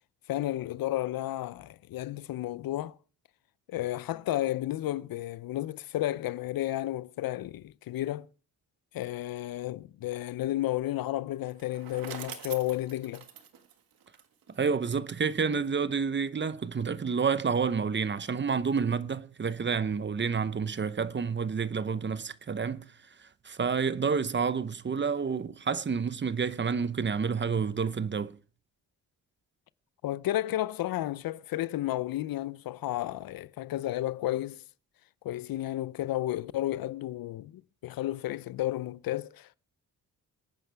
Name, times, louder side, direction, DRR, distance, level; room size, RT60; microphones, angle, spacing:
voice 1, 0.3-3.0 3.7-8.3 8.9-13.3 30.0-34.6 35.2-39.6, left 14 dB, 80° left, 0.6 m, -32 dB
Bicycle, 11.4-14.6, right 9 dB, 80° right, 1.6 m, -45 dB
voice 2, 14.5-22.9 23.2-28.4, right 5 dB, 30° right, 0.8 m, -29 dB
27.0 x 9.4 x 3.4 m
cardioid pair, 80°, 35 cm